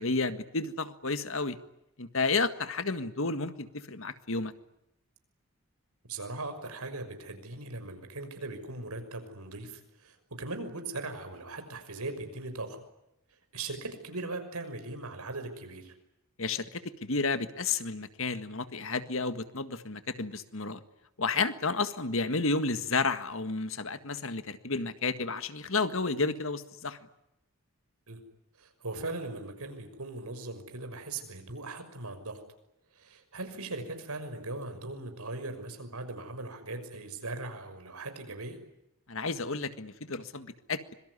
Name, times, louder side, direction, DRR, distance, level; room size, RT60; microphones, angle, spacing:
voice 1, 0.0-1.6 2.0-4.5 16.4-20.8 21.2-27.0 39.1-40.9, left 3 dB, 65° left, 11 dB, 1.8 m, -31 dB
voice 2, 6.1-12.8 13.5-15.9 28.1-28.2 28.6-32.4 32.9-38.6, right 2 dB, 90° right, 7 dB, 6.1 m, -39 dB
25.5 x 23.5 x 9.9 m, 0.86 s
head